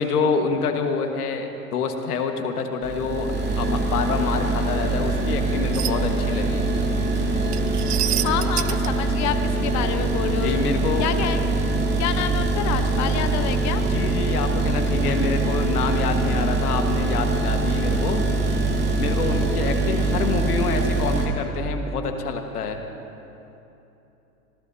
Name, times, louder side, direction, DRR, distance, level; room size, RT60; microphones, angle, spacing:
voice 1, 0.0-3.3 3.6-6.6 10.4-11.1 13.8-18.2 18.7-22.8, left 5 dB, 90° left, 4 dB, 1.7 m, -27 dB
sound 1, 2.8-21.3, right 2 dB, 25° right, 2.8 m, -23 dB
sound 2, 5.7-5.9 7.5-8.9, right 15 dB, 90° right, 0.7 m, -27 dB
voice 2, 8.2-9.3 9.6-10.6 11.0-11.4 12.0-13.8, left 9 dB, 40° left, 7 dB, 1.1 m, -27 dB
25.5 x 19.0 x 2.8 m, 3.0 s
hypercardioid pair, 110°, 44 cm